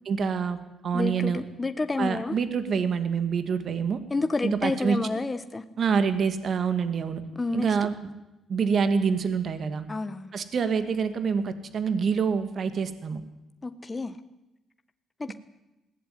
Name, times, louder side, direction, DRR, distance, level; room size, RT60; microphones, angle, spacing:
voice 1, 0.1-0.6 0.8-1.4 2.0-4.0 4.4-5.2 5.8-7.2 7.5-7.9 8.5-9.9 10.3-13.2, right 6 dB, 55° right, 11 dB, 2.3 m, -26 dB
voice 2, 0.9-2.4 4.1-5.6 7.4-7.7 9.9-10.3 13.6-14.2 15.2-15.3, left 3 dB, 25° left, 9 dB, 1.4 m, -29 dB
20.5 x 16.5 x 9.5 m, 0.97 s
cardioid pair, 75°, 0 cm